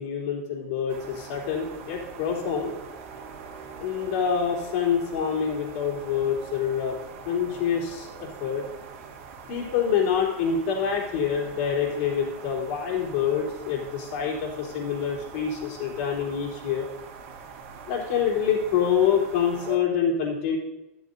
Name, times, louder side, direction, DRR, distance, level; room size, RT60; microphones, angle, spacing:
voice 1, 0.0-2.7 3.8-7.0 7.2-8.6 9.5-16.9 17.9-20.6, left 7 dB, 55° left, -2 dB, 3.7 m, -26 dB
sound 1, 0.9-19.8, right 5 dB, 60° right, 2.2 m, -43 dB
13.0 x 13.0 x 2.8 m, 0.94 s
supercardioid pair, 140°, 8 cm